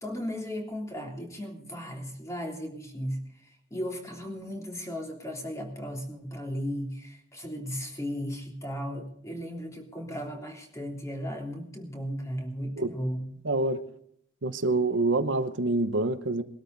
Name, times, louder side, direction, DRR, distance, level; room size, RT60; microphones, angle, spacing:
voice 1, 0.0-3.2 3.7-13.3, equal, 15° left, 1 dB, 3.2 m, -36 dB
voice 2, 13.4-13.8 14.4-16.4, right 2 dB, 65° right, 10 dB, 0.9 m, -26 dB
21.0 x 13.0 x 4.0 m, 0.68 s
head